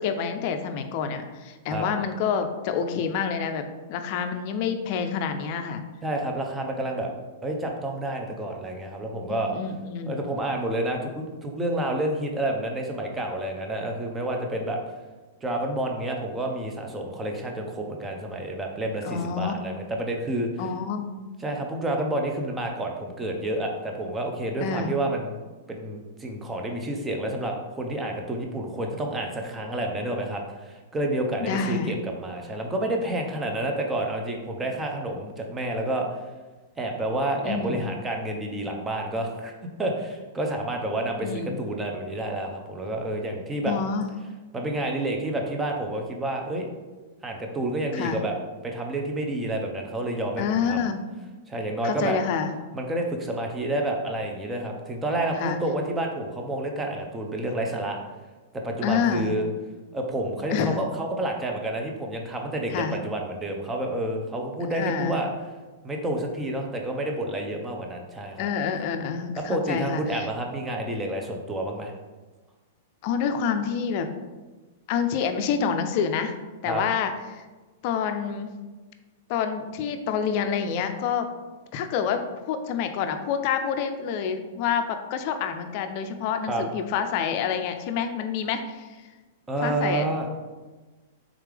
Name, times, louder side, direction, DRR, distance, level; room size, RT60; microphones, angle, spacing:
voice 1, 0.0-5.8 9.3-10.2 19.0-19.5 20.6-21.2 24.6-24.9 31.4-31.9 37.4-37.8 41.2-41.6 43.7-44.1 47.9-48.2 50.4-51.1 51.8-52.5 55.4-55.6 58.8-59.3 60.5-60.8 62.7-62.9 64.7-65.2 68.4-70.0 73.0-74.1 74.9-76.3 76.6-77.4 77.8-78.5 79.3-81.3 81.7-89.0 89.6-90.0, left 7 dB, 50° left, 7 dB, 0.4 m, -28 dB
voice 2, 6.0-7.1 7.4-9.5 10.1-14.8 15.4-20.5 21.4-25.4 25.7-36.1 36.8-39.5 39.8-43.7 44.5-46.7 47.2-48.3 48.6-50.9 51.5-52.2 52.7-58.0 58.5-59.5 59.9-65.3 65.8-68.5 69.4-71.9 76.7-76.8 86.5-86.6 89.5-90.3, right 1 dB, 15° right, 2 dB, 0.6 m, -29 dB
3.6 x 3.3 x 3.3 m, 1.3 s
hypercardioid pair, 120°, 0 cm